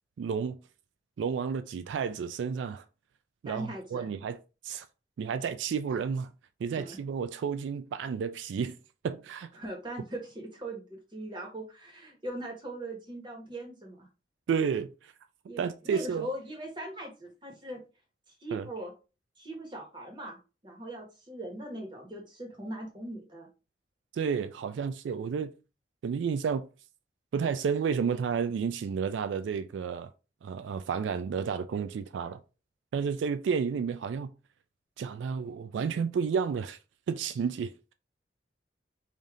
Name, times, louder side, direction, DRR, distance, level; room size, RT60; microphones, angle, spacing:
voice 1, 0.2-0.6 1.2-2.8 3.4-4.4 4.6-4.9 5.2-6.3 6.6-8.8 9.0-9.5 14.5-15.1 15.6-16.3 18.5-18.7 24.1-25.5 26.0-26.6 27.3-30.1 30.4-32.4 32.9-34.3 35.0-36.8 37.1-37.9, right 6 dB, 90° right, 0.3 m, -31 dB
voice 2, 3.5-4.1 6.7-7.0 9.6-14.1 15.5-17.8 18.4-18.9 19.4-20.4 20.6-23.5, right 1 dB, 25° right, 1.3 m, -40 dB
3.4 x 2.7 x 3.7 m
head